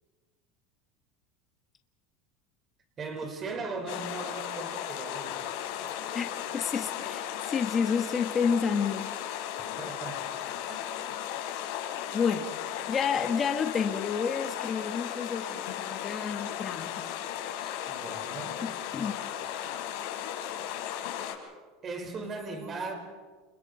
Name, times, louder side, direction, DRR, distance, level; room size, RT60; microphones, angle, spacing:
voice 1, 3.0-5.6 9.6-10.4 10.7-10.9 17.9-18.6 21.8-22.9, right 3 dB, 25° right, 4 dB, 4.3 m, -38 dB
sound 1, 3.9-21.3, left 10 dB, 70° left, 4.3 m, -36 dB
voice 2, 6.1-9.1 12.1-12.5 12.8-17.2 17.6-17.7 18.6-19.2, left 6 dB, 25° left, 5 dB, 1.4 m, -30 dB
29.5 x 29.0 x 4.2 m, 1.4 s
supercardioid pair, 155°, 0 cm